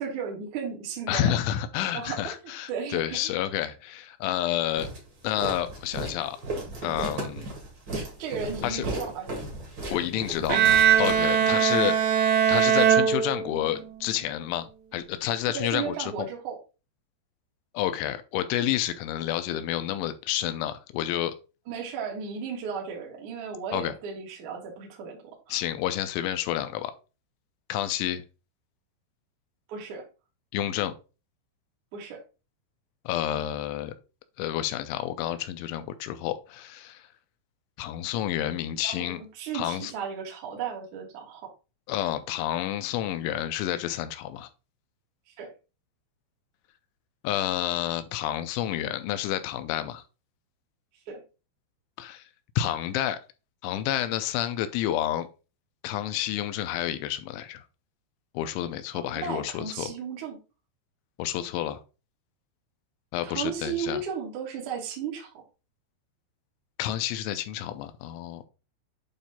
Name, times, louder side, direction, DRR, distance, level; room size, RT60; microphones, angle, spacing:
voice 1, 0.0-1.3 1.9-2.3 2.7-3.3 8.2-9.4 11.4-11.9 15.5-16.6 21.7-25.2 25.5-25.6 29.7-30.0 31.9-32.2 38.8-41.4 45.4-45.5 51.1-51.2 58.9-60.4 63.2-65.3, right 6 dB, 60° right, 2.0 m, -35 dB
voice 2, 1.1-4.9 5.2-6.4 6.8-7.5 8.6-8.8 9.9-10.6 11.0-12.0 12.5-14.7 14.9-16.3 17.7-21.3 23.7-23.9 25.5-26.9 27.7-28.2 30.5-30.9 33.1-33.9 34.4-37.0 37.8-39.2 39.5-39.9 41.9-44.5 47.2-50.0 52.0-52.2 52.6-53.2 53.6-55.3 55.8-57.6 58.3-59.9 61.2-61.8 63.1-64.0 66.8-68.4, left 12 dB, 85° left, 2.8 m, -29 dB
Walk footsteps, 4.8-11.7, right 2 dB, 45° right, 1.5 m, -35 dB
Bowed string instrument, 10.5-13.8, right 8 dB, 80° right, 2.5 m, -21 dB
8.9 x 3.1 x 4.1 m
omnidirectional pair, 5.8 m